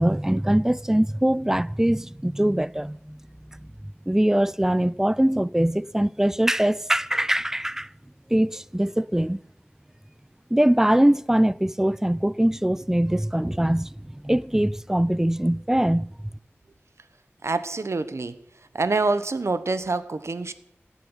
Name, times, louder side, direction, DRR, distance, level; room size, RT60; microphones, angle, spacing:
voice 1, 0.0-3.2 4.1-7.9 8.3-9.4 10.5-13.9 14.2-16.1, right 1 dB, 10° right, 0.5 m, -22 dB
voice 2, 17.4-18.4 18.7-20.5, right 3 dB, 70° right, 1.2 m, -26 dB
15.5 x 8.5 x 10.0 m
wide cardioid pair, 50°, 5 cm